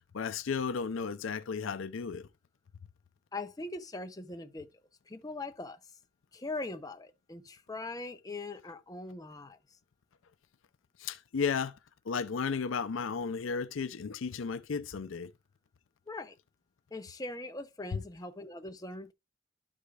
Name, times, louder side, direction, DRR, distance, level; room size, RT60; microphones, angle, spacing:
voice 1, 0.1-2.3 11.0-11.8 12.1-15.3, left 5 dB, 65° left, 0.5 m, -34 dB
voice 2, 3.3-4.7 5.1-5.8 6.3-9.6 16.1-16.4 16.9-19.1, left 2 dB, 15° left, 0.7 m, -41 dB
12.5 x 4.9 x 2.4 m
head